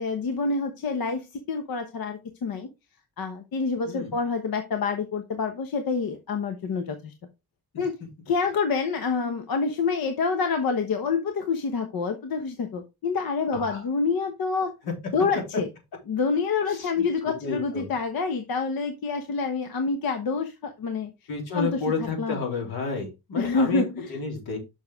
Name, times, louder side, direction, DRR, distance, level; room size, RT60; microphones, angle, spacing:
voice 1, 0.0-2.7 3.2-7.1 7.8-7.9 8.3-14.7 15.1-15.7 16.1-21.1 21.5-22.4 23.4-24.2, left 4 dB, 65° left, 6 dB, 1.1 m, -27 dB
voice 2, 3.9-4.2 7.7-7.8 13.5-13.8 14.8-14.9 16.7-16.9 17.4-17.9 21.3-23.8 24.1-24.6, left 4 dB, 90° left, 1 dB, 3.5 m, -31 dB
7.0 x 6.1 x 3.6 m, 0.25 s
wide cardioid pair, 145°, 37 cm